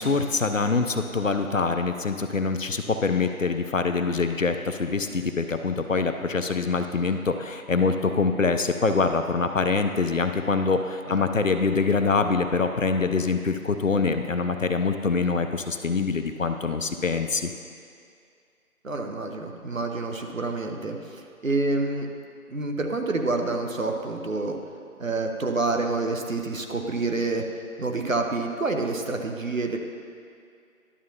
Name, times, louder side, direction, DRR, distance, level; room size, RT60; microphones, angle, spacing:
voice 1, 0.0-17.5, left 4 dB, 60° left, 7 dB, 0.6 m, -24 dB
voice 2, 18.8-22.1 22.5-24.6 25.0-29.8, right 3 dB, 65° right, 3 dB, 0.9 m, -28 dB
11.0 x 6.8 x 2.8 m, 2.3 s
figure-of-eight pair, 170°, 43 cm